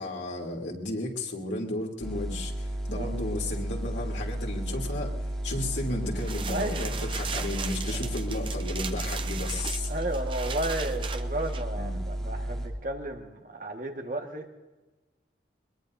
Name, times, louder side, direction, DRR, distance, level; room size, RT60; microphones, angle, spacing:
voice 1, 0.0-5.1 5.4-9.9 11.7-11.9, left 2 dB, 85° left, 0 dB, 3.1 m, -34 dB
sound 1, 2.0-12.7, right 1 dB, ahead, 3.2 m, -33 dB
sound 2, 6.2-11.6, right 6 dB, 30° right, 0.8 m, -38 dB
voice 2, 6.5-7.1 9.9-14.5, right 1 dB, 45° right, 3 dB, 1.7 m, -33 dB
22.5 x 21.5 x 2.7 m, 1.2 s
head